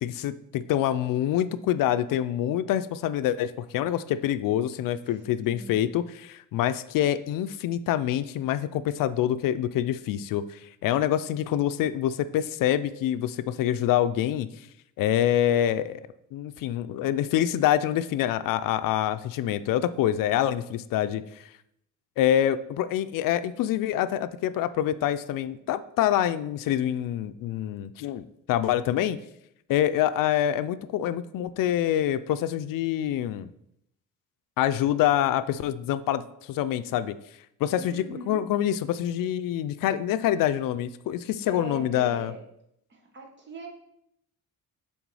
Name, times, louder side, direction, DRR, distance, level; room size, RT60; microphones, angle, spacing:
voice 1, 0.0-14.5 15.0-16.0 16.3-21.5 22.2-29.2 29.7-33.5 34.6-37.1 37.6-42.3, left 11 dB, 80° left, 13 dB, 0.5 m, -26 dB
voice 2, 5.5-5.9 19.5-19.8 37.7-38.4 41.5-42.4 42.9-43.7, right 3 dB, 35° right, 2 dB, 1.3 m, -42 dB
7.9 x 3.7 x 4.8 m, 0.76 s
cardioid pair, 160°, 33 cm